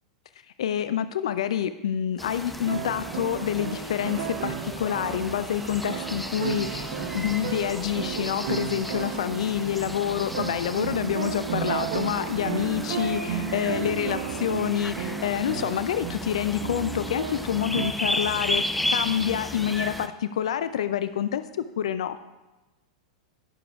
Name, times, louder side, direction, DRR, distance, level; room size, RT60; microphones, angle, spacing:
voice 1, 0.6-6.9 7.1-18.6 18.9-21.4 21.8-22.2, left 10 dB, 70° left, 13 dB, 0.4 m, -27 dB
sound 1, 2.2-20.1, left 1 dB, 5° left, 0.6 m, -34 dB
sound 2, 2.2-2.3 2.5-21.4, right 4 dB, 20° right, 1.2 m, -49 dB
sound 3, 2.5-17.9, right 9 dB, 65° right, 0.6 m, -34 dB
20.0 x 6.8 x 2.4 m, 1.1 s
hypercardioid pair, 100°, 3 cm